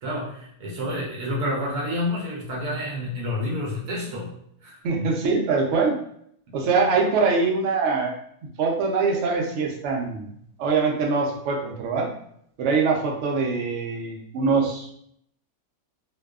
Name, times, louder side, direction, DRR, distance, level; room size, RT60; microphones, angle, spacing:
voice 1, 0.0-4.3 4.6-5.0, left 1 dB, 80° right, -2 dB, 1.1 m, -29 dB
voice 2, 4.8-6.0 6.5-8.1 8.6-10.3 10.6-12.1 12.6-14.9, right 4 dB, 65° right, 0 dB, 0.7 m, -23 dB
2.6 x 2.2 x 2.3 m, 0.69 s
omnidirectional pair, 1.6 m